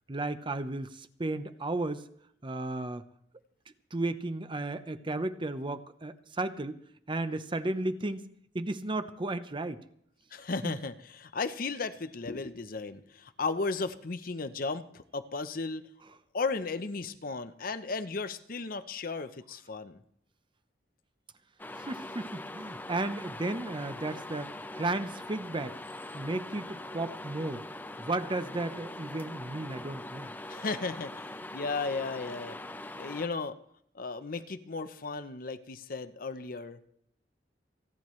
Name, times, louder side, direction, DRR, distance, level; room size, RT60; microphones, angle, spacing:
voice 1, 0.1-2.1 2.4-3.1 3.9-6.8 7.1-9.8 10.6-10.7 21.8-25.8 26.1-27.6 28.0-30.3, right 2 dB, 30° right, 11 dB, 0.7 m, -34 dB
voice 2, 10.3-15.8 16.3-20.0 30.5-32.6 33.0-33.6 33.9-36.8, left 4 dB, 55° left, 10 dB, 0.8 m, -35 dB
sound 1, 21.6-33.3, left 1 dB, 10° left, 0.6 m, -42 dB
29.5 x 10.5 x 3.2 m, 0.69 s
head